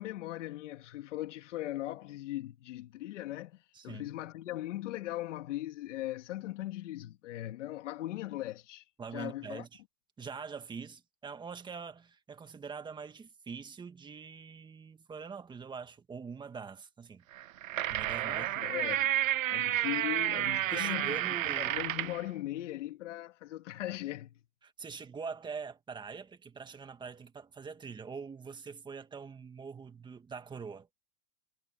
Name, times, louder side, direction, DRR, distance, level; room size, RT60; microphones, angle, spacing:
voice 1, 0.0-9.7 18.2-19.2 19.5-21.3 21.6-24.3, left 15 dB, 65° left, 2.3 m, -39 dB
voice 2, 3.7-4.1 9.0-9.8 10.2-17.2 17.9-18.5 20.7-21.7 24.6-30.9, right 5 dB, 10° right, 1.8 m, -44 dB
sound 1, 17.4-22.2, right 13 dB, 85° right, 1.1 m, -31 dB
supercardioid pair, 145°, 39 cm